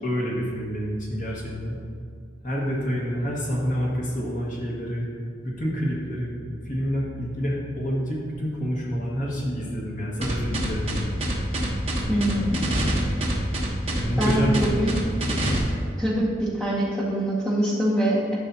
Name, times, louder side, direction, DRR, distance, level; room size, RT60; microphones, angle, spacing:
voice 1, 0.0-1.8 2.4-5.1 5.4-6.4 6.6-11.0 13.9-15.1, equal, 45° left, -4 dB, 1.7 m, -28 dB
sound 1, 10.2-15.6, right 1 dB, 30° right, 1.1 m, -25 dB
voice 2, 12.1-12.6 14.2-15.0 16.0-18.4, right 1 dB, 5° left, -7 dB, 1.7 m, -24 dB
11.5 x 5.4 x 2.8 m, 2.2 s
head